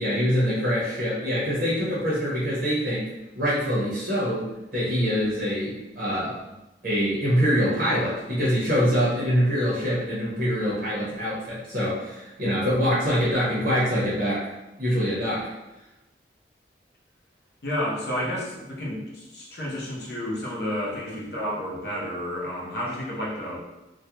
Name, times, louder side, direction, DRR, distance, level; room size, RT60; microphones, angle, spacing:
voice 1, 0.0-3.1 3.4-4.5 4.7-6.4 6.8-14.5 14.8-15.4, equal, 55° right, -8 dB, 0.7 m, -24 dB
voice 2, 17.6-23.6, equal, 65° left, -4 dB, 0.7 m, -31 dB
2.3 x 2.1 x 2.8 m, 1.0 s
head